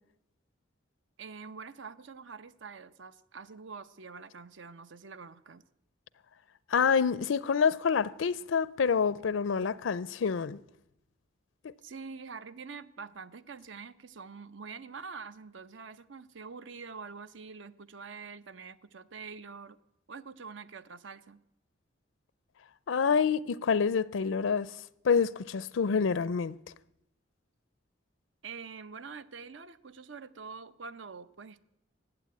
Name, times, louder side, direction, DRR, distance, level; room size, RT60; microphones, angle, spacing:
voice 1, 1.2-5.6 11.8-19.8 20.1-21.4 28.4-31.6, right 5 dB, 70° right, 0.8 m, -45 dB
voice 2, 6.7-10.6 11.6-11.7 22.9-26.6, left 6 dB, 85° left, 0.5 m, -27 dB
15.5 x 9.1 x 9.5 m
head